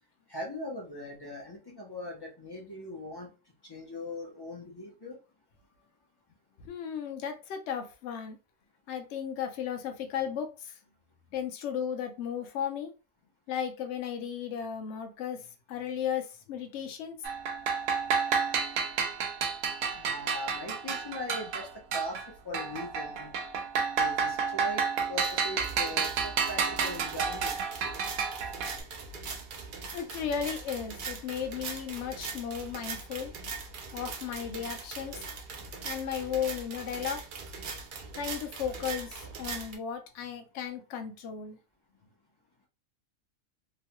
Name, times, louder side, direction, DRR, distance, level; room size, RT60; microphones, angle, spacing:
voice 1, 0.3-3.3 3.6-5.2 19.9-22.2 22.4-23.3 24.0-24.8 25.1-27.5, left 1 dB, 30° left, 0.4 m, -40 dB
voice 2, 6.6-8.4 8.9-10.8 11.3-12.9 13.5-15.4 15.7-17.2 29.9-33.3 33.9-35.2 35.8-37.2 38.1-41.6, left 8 dB, 65° left, 0.8 m, -35 dB
sound 1, 17.2-22.3 22.5-28.8, right 6 dB, 85° right, 1.0 m, -31 dB
sound 2, 25.0-39.8, right 4 dB, 60° right, 0.5 m, -41 dB
3.0 x 2.2 x 2.8 m
omnidirectional pair, 1.4 m